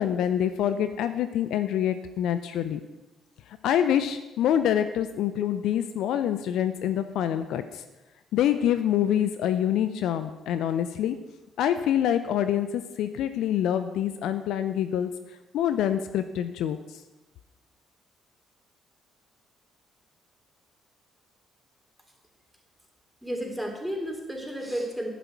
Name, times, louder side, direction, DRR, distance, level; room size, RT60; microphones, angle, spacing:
voice 1, 0.0-2.8 3.6-7.8 8.3-11.2 11.6-15.1 15.5-17.0, left 10 dB, 65° left, 11 dB, 0.5 m, -26 dB
voice 2, 23.2-25.1, equal, ahead, 1 dB, 3.3 m, -32 dB
11.0 x 10.5 x 4.5 m, 1.1 s
hypercardioid pair, 45°, 0 cm